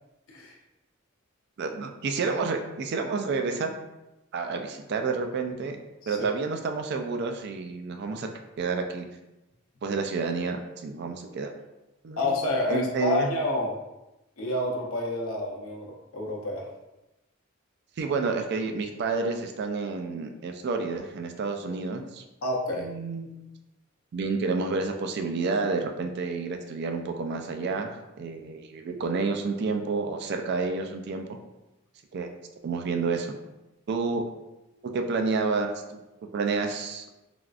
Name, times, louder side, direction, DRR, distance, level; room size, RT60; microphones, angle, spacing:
voice 1, 1.6-3.7 4.3-5.8 6.1-8.3 8.6-9.1 9.8-11.5 12.0-12.3 12.7-13.3 18.0-22.2 22.8-23.4 24.1-31.3 32.1-32.3 32.6-33.4 33.9-34.2 34.9-36.0 36.3-37.1, right 4 dB, 55° right, 5 dB, 0.3 m, -29 dB
voice 2, 12.2-13.8 14.4-16.7 22.4-22.9, left 2 dB, 85° left, -1 dB, 0.6 m, -29 dB
3.3 x 2.4 x 2.3 m, 0.98 s
head